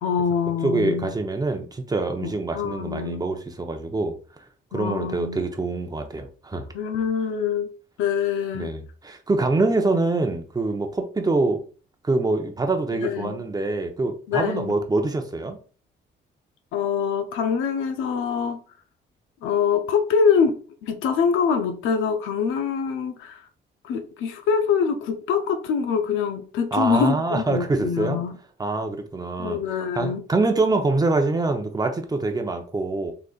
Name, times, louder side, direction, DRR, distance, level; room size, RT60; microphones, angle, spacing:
voice 1, 0.0-1.1 2.2-3.2 4.7-5.5 6.7-7.7 8.0-8.7 12.9-13.4 14.3-14.7 16.7-18.6 19.4-23.4 23.8-28.3 29.4-30.2, left 6 dB, 90° left, 0.6 m, -24 dB
voice 2, 0.6-4.2 4.7-6.7 8.5-11.6 12.0-15.6 26.7-28.2 28.6-29.6 29.9-33.1, right 3 dB, 20° right, 0.8 m, -25 dB
3.9 x 3.2 x 2.4 m
cardioid pair, 90°, 20 cm